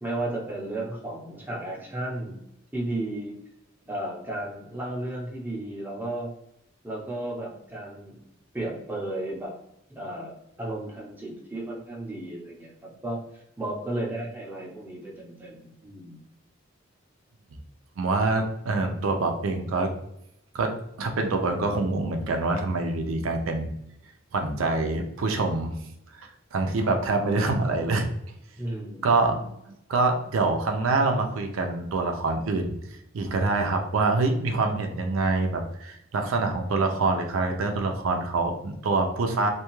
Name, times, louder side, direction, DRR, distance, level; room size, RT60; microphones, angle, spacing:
voice 1, 0.0-2.4 2.7-3.4 3.9-6.3 6.8-8.2 8.5-9.6 9.9-13.2 13.6-16.2 28.6-29.1, right 1 dB, 10° right, -3 dB, 0.6 m, -34 dB
voice 2, 18.0-19.9 20.5-20.7 21.0-23.7 24.3-25.7 26.1-28.0 29.0-32.8 33.1-39.5, right 3 dB, 80° right, 4 dB, 0.4 m, -25 dB
2.6 x 2.3 x 2.9 m, 0.80 s
head